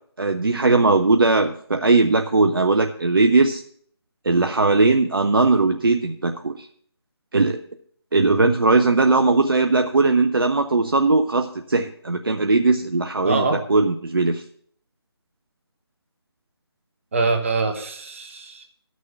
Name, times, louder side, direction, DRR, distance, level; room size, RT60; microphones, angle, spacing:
voice 1, 0.2-3.6 4.2-6.7 7.3-7.6 8.1-14.4, right 3 dB, 55° right, 6 dB, 0.6 m, -19 dB
voice 2, 13.2-13.6 17.1-18.6, right 3 dB, 30° right, 5 dB, 1.1 m, -24 dB
13.0 x 6.4 x 5.7 m, 0.62 s
figure-of-eight pair, 155°, 14 cm